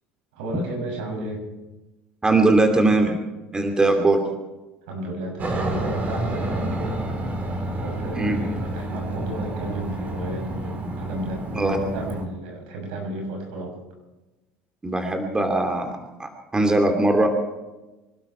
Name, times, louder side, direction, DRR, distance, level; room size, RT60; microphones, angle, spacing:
voice 1, 0.3-1.4 4.9-7.0 7.8-13.7, right 2 dB, 80° right, 1 dB, 6.9 m, -32 dB
voice 2, 2.2-3.1 3.5-4.2 8.2-8.4 11.5-11.8 14.8-17.3, right 2 dB, 15° right, 4 dB, 2.8 m, -20 dB
Aircraft, 5.4-12.2, right 1 dB, 35° right, 4.1 m, -29 dB
26.0 x 12.0 x 4.5 m, 1.1 s
supercardioid pair, 90°, 5 cm